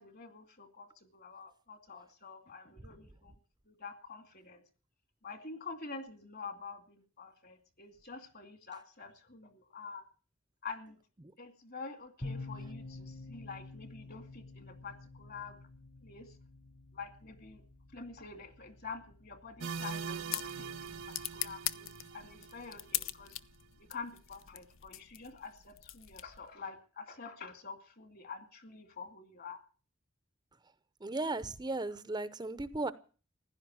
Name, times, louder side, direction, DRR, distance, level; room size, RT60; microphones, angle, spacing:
voice 1, 0.0-3.3 3.7-4.6 5.2-10.0 10.6-11.0 11.4-15.6 16.0-16.3 16.9-17.6 17.9-23.3 23.9-29.6, left 4 dB, 50° left, 2.4 m, -47 dB
sound 1, 12.2-21.6, left 2 dB, 30° left, 1.2 m, -49 dB
sound 2, 19.6-23.3, right 6 dB, 75° right, 1.2 m, -43 dB
sound 3, 19.7-26.6, left 13 dB, 70° left, 0.7 m, -42 dB
voice 2, 31.0-32.9, right 2 dB, 20° right, 0.7 m, -36 dB
16.0 x 11.0 x 7.5 m
head